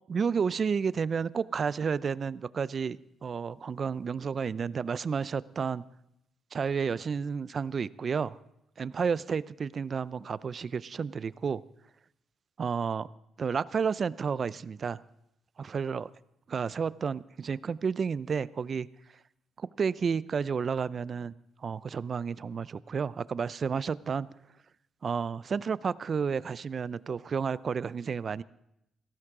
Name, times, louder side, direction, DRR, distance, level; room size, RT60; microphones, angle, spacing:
voice 1, 0.1-5.8 6.5-8.4 8.8-11.6 12.6-13.1 13.4-15.0 15.6-16.1 16.5-18.9 19.6-21.3 21.6-24.3 25.0-28.4, right 6 dB, 45° right, 20 dB, 0.4 m, -31 dB
17.0 x 14.5 x 3.7 m, 0.81 s
cardioid pair, 90°, 0 cm